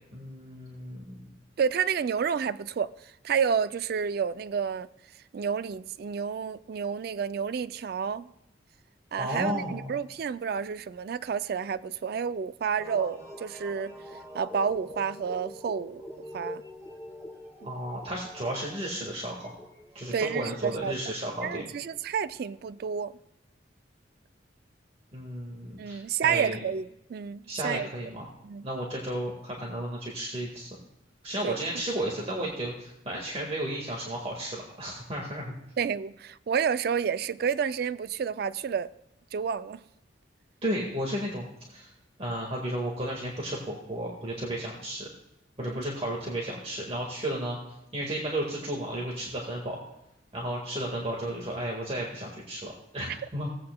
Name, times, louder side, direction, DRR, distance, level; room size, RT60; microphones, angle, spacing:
voice 1, 0.1-1.3 9.2-9.9 17.6-19.5 20.0-21.7 25.1-26.6 27.5-28.3 28.6-30.7 31.2-35.5 40.6-41.9 42.2-45.1 45.6-47.6 47.9-49.8 50.3-53.5, right 1 dB, 35° right, 1.7 m, -33 dB
voice 2, 1.6-2.9 3.2-4.9 5.3-8.3 9.1-13.9 14.3-16.0 16.3-16.6 17.6-17.7 20.1-21.0 21.4-23.1 25.8-27.9 28.4-28.6 31.4-31.6 35.8-38.9 39.3-39.8 45.6-45.8 53.1-53.2, right 7 dB, 55° right, 0.3 m, -30 dB
sound 1, 12.8-22.7, left 1 dB, 15° right, 1.8 m, -45 dB
17.0 x 8.5 x 2.2 m
head